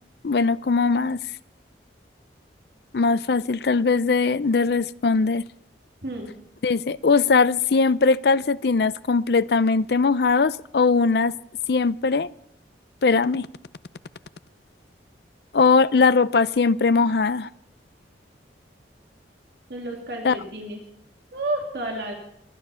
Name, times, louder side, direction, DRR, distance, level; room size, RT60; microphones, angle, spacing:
voice 1, 0.2-1.2 2.9-5.4 6.6-11.3 11.7-12.3 13.0-13.5 15.5-17.5 20.2-20.4, left 4 dB, 60° left, 17 dB, 0.5 m, -20 dB
voice 2, 6.0-6.3 19.7-20.8 21.3-22.1, right 1 dB, 60° right, 1 dB, 2.7 m, -31 dB
23.5 x 9.8 x 5.6 m, 0.74 s
head